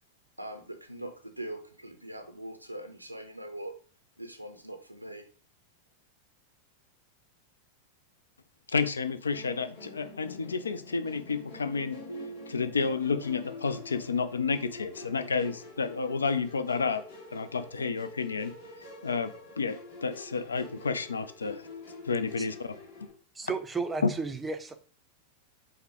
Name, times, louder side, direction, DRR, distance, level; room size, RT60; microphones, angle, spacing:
voice 1, 0.4-3.8 4.2-5.3, right 1 dB, 90° right, 7 dB, 0.5 m, -42 dB
voice 2, 8.7-17.0 17.3-18.5 19.0-19.3 19.6-21.6 22.1-22.8, left 4 dB, 75° left, 11 dB, 0.3 m, -31 dB
Musical instrument, 9.3-23.1, left 3 dB, 55° left, 1.5 m, -47 dB
voice 3, 23.3-24.7, right 4 dB, 15° right, 8 dB, 0.4 m, -33 dB
4.9 x 2.1 x 3.0 m, 0.41 s
figure-of-eight pair, 90°, 0 cm